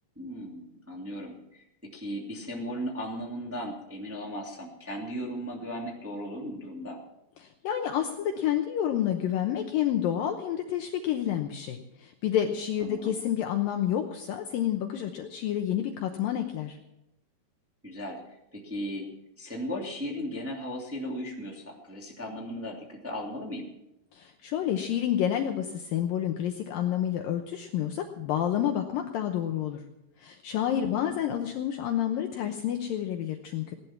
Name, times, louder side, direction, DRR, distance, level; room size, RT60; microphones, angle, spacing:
voice 1, 0.2-1.6 1.9-7.0 12.8-13.2 17.8-18.2 18.5-19.1 19.4-23.7 30.8-31.2, equal, 5° right, -2 dB, 1.8 m, -36 dB
voice 2, 7.4-16.8 24.1-29.8 30.2-33.7, left 10 dB, 75° left, 4 dB, 2.2 m, -29 dB
17.5 x 11.0 x 5.9 m, 0.85 s
omnidirectional pair, 4.9 m